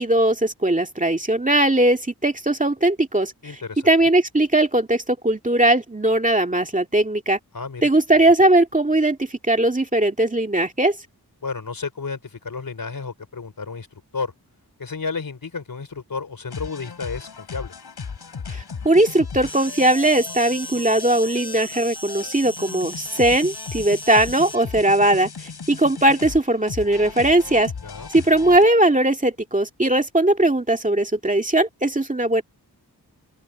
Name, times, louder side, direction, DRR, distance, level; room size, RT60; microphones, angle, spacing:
voice 1, 0.0-3.3 3.8-7.4 7.8-11.0 18.5-27.7 28.1-32.4, right 1 dB, 20° right, 2.2 m, -19 dB
voice 2, 3.4-3.9 7.5-7.9 11.4-14.3 14.8-17.7 27.8-28.1, left 4 dB, 60° left, 4.0 m, -32 dB
sound 1, 16.5-28.6, left 5 dB, 90° left, 6.2 m, -36 dB
Insect, 19.5-24.6, left 1 dB, 15° left, 5.6 m, -36 dB
open air
wide cardioid pair, 70°, 38 cm